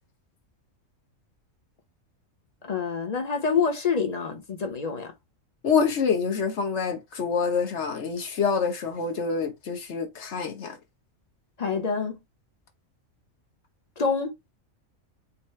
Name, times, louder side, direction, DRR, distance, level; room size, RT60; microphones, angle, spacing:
voice 1, 2.6-5.1 11.6-12.2 14.0-14.3, left 5 dB, 35° left, 0.8 m, -27 dB
voice 2, 5.6-10.8, left 5 dB, 60° left, 1.3 m, -26 dB
4.1 x 3.6 x 3.1 m
omnidirectional pair, 1.4 m